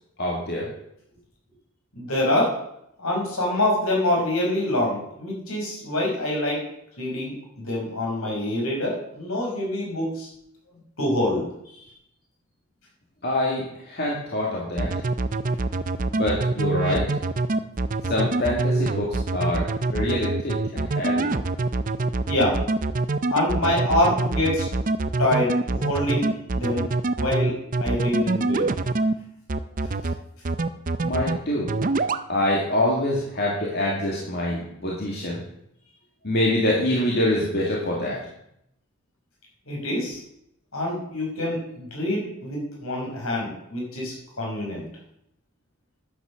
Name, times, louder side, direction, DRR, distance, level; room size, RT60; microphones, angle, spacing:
voice 1, 0.2-0.7 13.2-14.9 16.1-17.0 18.0-21.3 31.0-31.7 32.3-35.4 36.2-38.2, left 1 dB, 45° left, -3 dB, 2.3 m, -25 dB
voice 2, 1.9-2.6 3.0-6.7 7.0-10.3 11.0-11.4 11.7-11.9 17.4-17.6 22.3-22.6 23.3-24.7 25.2-26.9 27.2-28.7 39.7-40.2 40.7-44.8, left 1 dB, 70° left, -1 dB, 5.3 m, -25 dB
sound 1, 14.8-29.1 29.5-30.1 30.5-31.4 31.7-32.2, right 3 dB, 35° right, 0.5 m, -24 dB
11.0 x 8.5 x 6.6 m, 0.76 s
head